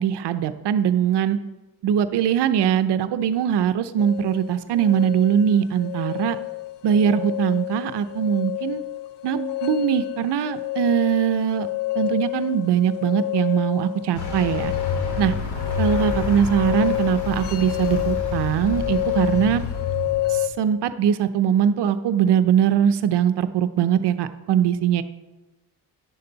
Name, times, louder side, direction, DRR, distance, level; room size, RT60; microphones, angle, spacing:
voice 1, 0.0-1.4 1.8-6.4 6.8-8.8 9.2-11.7 12.0-14.7 15.2-15.3 15.8-19.6 20.3-25.0, right 9 dB, 80° right, 11 dB, 0.7 m, -21 dB
sound 1, 4.0-20.5, left 17 dB, 90° left, 0.7 m, -29 dB
Vehicle, 14.1-20.5, left 4 dB, 70° left, 2.3 m, -29 dB
11.0 x 10.5 x 4.0 m, 1.1 s
cardioid pair, 90°, 40 cm